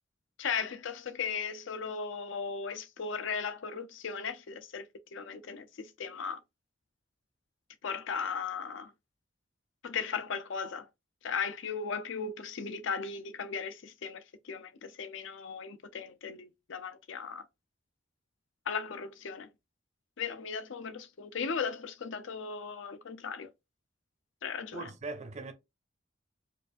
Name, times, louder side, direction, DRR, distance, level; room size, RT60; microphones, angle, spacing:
voice 1, 0.4-4.9 5.1-6.4 7.8-8.9 9.8-10.9 11.2-17.4 18.7-19.5 20.2-23.5 24.4-24.9, left 6 dB, 70° left, 0.5 m, -37 dB
voice 2, 24.7-25.5, right 3 dB, 35° right, 0.6 m, -40 dB
4.6 x 2.4 x 2.5 m
head